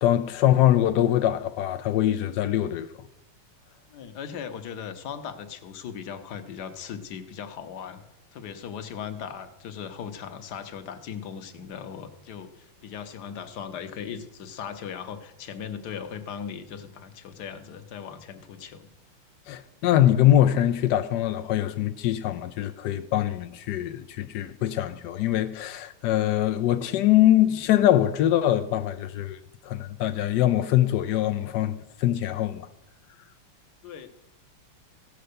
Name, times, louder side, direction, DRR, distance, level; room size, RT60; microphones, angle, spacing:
voice 1, 0.0-2.9 19.5-32.7, left 12 dB, 80° left, 0.9 m, -23 dB
voice 2, 3.9-8.0 8.3-18.9 33.8-34.1, left 7 dB, 60° left, 1.3 m, -38 dB
15.5 x 6.7 x 6.6 m
omnidirectional pair, 2.3 m